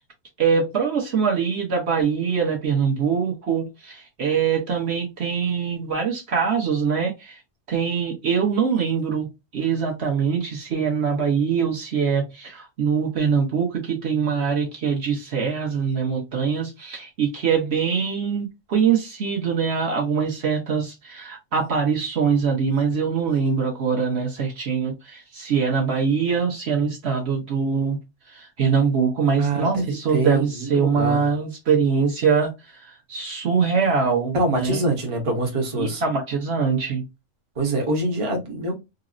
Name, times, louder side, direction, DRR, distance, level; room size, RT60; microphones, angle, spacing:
voice 1, 0.4-7.4 7.7-9.3 9.5-28.0 28.3-32.5 32.8-34.8 35.8-37.0, right 6 dB, 60° right, 1.0 m, -23 dB
voice 2, 29.4-29.8 30.1-31.3 34.3-36.0 37.6-38.8, right 2 dB, 30° right, 0.8 m, -24 dB
3.8 x 2.0 x 2.4 m
omnidirectional pair, 1.3 m